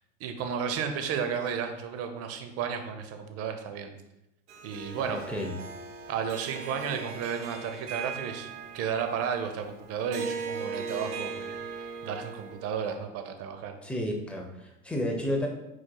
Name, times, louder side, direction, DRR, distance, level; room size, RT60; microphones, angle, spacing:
voice 1, 0.2-3.9 4.6-5.2 6.1-11.6 12.0-13.8, right 7 dB, 40° right, 6 dB, 0.6 m, -33 dB
Harp, 4.5-12.9, right 5 dB, 65° right, 1.0 m, -39 dB
voice 2, 5.0-5.5 13.8-15.5, left 1 dB, 5° left, 1 dB, 0.6 m, -31 dB
4.5 x 4.4 x 2.2 m, 0.89 s
hypercardioid pair, 100°, 38 cm